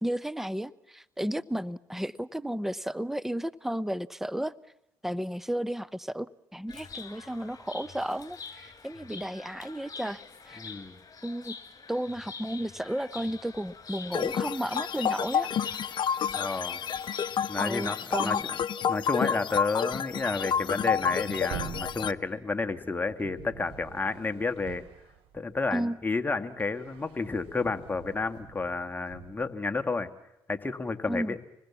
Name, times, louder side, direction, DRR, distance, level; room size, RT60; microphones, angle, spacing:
voice 1, 0.0-4.5 5.0-10.6 11.2-11.6 11.9-15.5 17.6-18.4 20.6-20.9 25.7-26.0 31.1-31.4, right 1 dB, 5° right, 18 dB, 0.9 m, -33 dB
Chirp tweet, 6.7-18.4, left 5 dB, 40° left, 6.2 m, -45 dB
voice 2, 10.6-11.0 16.3-16.8 17.5-18.4 18.9-24.8 25.3-30.1 30.5-31.4, left 3 dB, 20° left, 7 dB, 2.1 m, -31 dB
sound 1, 14.1-22.1, left 8 dB, 60° left, 0.9 m, -29 dB
sound 2, 19.8-25.8 26.2-29.5, right 8 dB, 80° right, 3.0 m, -46 dB
27.0 x 20.5 x 7.3 m, 0.87 s
supercardioid pair, 65°, 9 cm